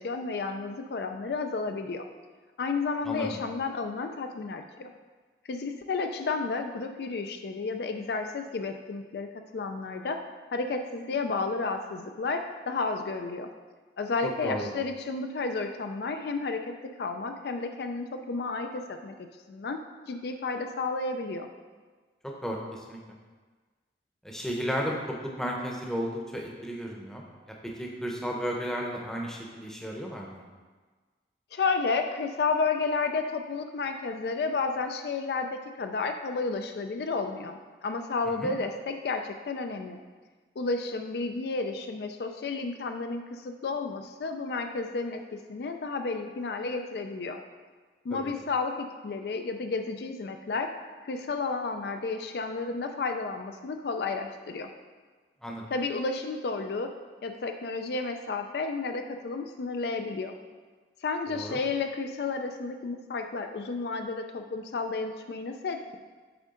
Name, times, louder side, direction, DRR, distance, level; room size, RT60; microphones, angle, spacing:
voice 1, 0.0-2.0 2.6-4.9 5.4-9.3 9.5-10.2 10.5-13.5 14.0-16.7 17.0-19.1 19.5-19.8 20.1-21.5 31.5-40.0 40.6-45.2 45.5-47.4 48.0-50.7 51.0-54.7 55.7-56.9 57.2-60.3 61.0-66.0, left 4 dB, 65° left, 6 dB, 0.4 m, -32 dB
voice 2, 3.0-3.4 14.2-14.7 22.2-23.0 24.2-27.2 27.6-30.5 38.3-38.5 48.1-48.3 55.4-55.6 61.3-61.6, equal, 5° left, -1 dB, 0.7 m, -34 dB
7.8 x 3.6 x 3.7 m, 1.4 s
head